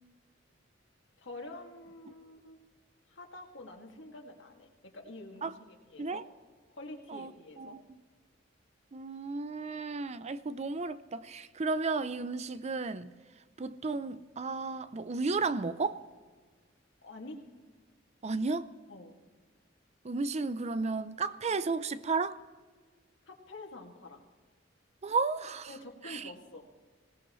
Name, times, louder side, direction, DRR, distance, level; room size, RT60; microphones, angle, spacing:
voice 1, 1.2-2.6 3.1-5.6 5.9-6.2 6.7-7.8 17.0-17.4 18.9-19.2 23.3-24.2 25.7-26.7, left 2 dB, 70° left, 2.2 m, -47 dB
voice 2, 7.6-8.0 8.9-13.1 13.6-16.0 18.2-18.7 20.0-22.4 25.0-25.7 26.0-26.3, right 4 dB, 35° right, 0.5 m, -33 dB
25.0 x 17.5 x 3.1 m
head